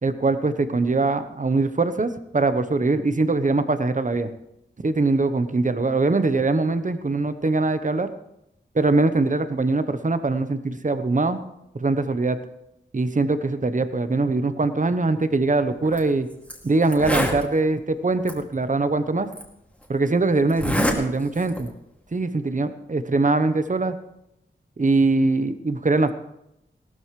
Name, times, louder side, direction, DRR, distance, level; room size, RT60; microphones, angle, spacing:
voice 1, 0.0-4.3 4.8-8.1 8.7-11.4 11.7-12.4 12.9-16.3 16.6-19.3 19.9-21.7 22.1-23.9 24.8-26.1, right 3 dB, 40° right, 10 dB, 0.9 m, -22 dB
Zipper (clothing), 15.8-16.0 16.5-16.6 16.8-17.4 18.3-18.4 19.3-19.4 20.5-21.0 21.3-21.7, equal, 5° left, 2.4 m, -24 dB
17.5 x 13.5 x 3.2 m, 0.83 s
wide cardioid pair, 85°, 20 cm